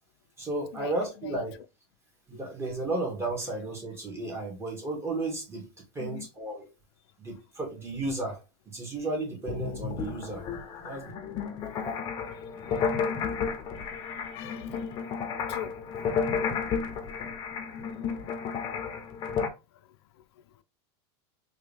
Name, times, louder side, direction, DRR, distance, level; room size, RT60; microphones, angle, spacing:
voice 1, 0.4-1.6 2.3-5.7 5.9-6.7 7.2-8.4 8.7-10.4 10.8-11.1, right 2 dB, 20° right, 1.7 m, -33 dB
sound 1, 9.5-19.5, left 6 dB, 30° left, 0.7 m, -32 dB
voice 2, 14.3-14.9 15.5-15.8 16.8-16.9 18.2-18.6 20.2-20.3, left 11 dB, 75° left, 0.4 m, -42 dB
3.5 x 2.7 x 3.4 m
supercardioid pair, 135°, 14 cm